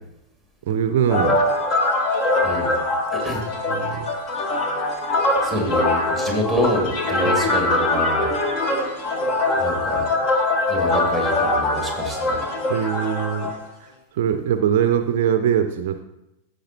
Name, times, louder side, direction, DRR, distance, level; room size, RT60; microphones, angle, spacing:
voice 1, 0.7-1.4 3.7-4.1 7.2-7.4 12.7-13.5 13.8-16.0, right 9 dB, 55° right, 9 dB, 0.5 m, -22 dB
sound 1, 1.1-13.5, left 2 dB, 35° left, 1.4 m, -22 dB
voice 2, 2.4-2.8 3.1-3.4 5.4-8.3 9.6-10.0 10.7-12.4, equal, 5° left, 0 dB, 2.5 m, -26 dB
14.5 x 6.6 x 2.9 m, 0.90 s
figure-of-eight pair, 90°, 0 cm